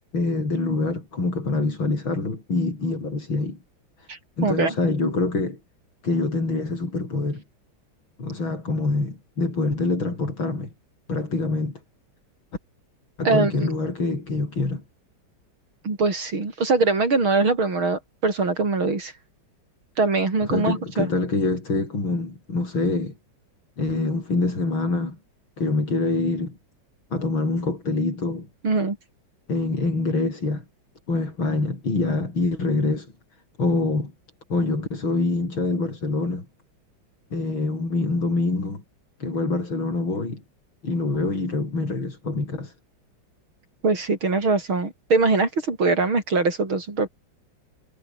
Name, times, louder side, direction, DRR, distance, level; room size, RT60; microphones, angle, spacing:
voice 1, 0.1-3.6 4.0-4.1 4.4-5.6 6.0-7.4 8.2-10.7 11.1-11.8 13.2-14.8 20.4-23.1 23.8-25.2 25.6-26.6 27.1-28.5 29.5-30.7 31.1-33.1 33.6-34.1 34.5-36.5 37.3-38.8 39.2-40.4 40.8-42.7, left 3 dB, 75° left, 7.0 m, -25 dB
voice 2, 4.1-4.7 13.2-13.7 15.8-19.1 20.0-21.1 28.6-29.0 43.8-47.1, right 3 dB, 85° right, 5.8 m, -22 dB
omnidirectional pair, 2.2 m